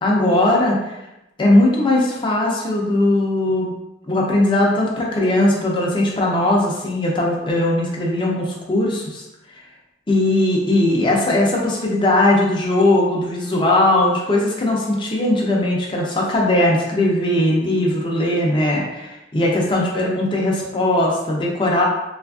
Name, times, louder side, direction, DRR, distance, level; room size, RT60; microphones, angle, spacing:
voice 1, 0.0-0.9 1.4-3.7 4.1-9.2 10.1-21.8, left 1 dB, 30° left, -2 dB, 0.5 m, -19 dB
3.3 x 2.5 x 2.3 m, 0.94 s
head